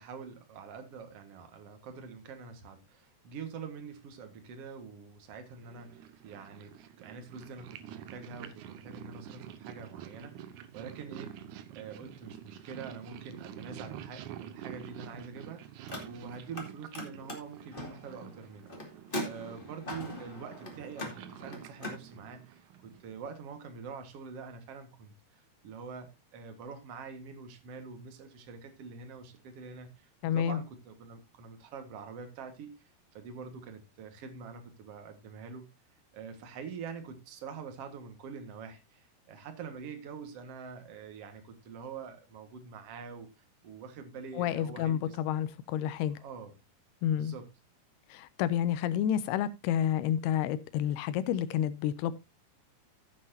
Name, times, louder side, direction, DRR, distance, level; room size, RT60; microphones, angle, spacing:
voice 1, 0.0-11.4 11.7-15.7 16.0-18.7 19.2-35.7 36.1-43.3 43.6-45.2 46.1-46.5 47.2-47.5, right 5 dB, 50° right, 2.0 m, -45 dB
Purr, 5.5-23.2, right 10 dB, 80° right, 1.8 m, -48 dB
Car, 15.8-16.7 16.9-22.0, left 1 dB, 20° left, 1.7 m, -41 dB
voice 2, 30.2-30.6 44.4-46.2 47.0-47.3 48.1-52.1, left 10 dB, 85° left, 2.7 m, -30 dB
15.0 x 7.6 x 2.7 m
omnidirectional pair, 4.5 m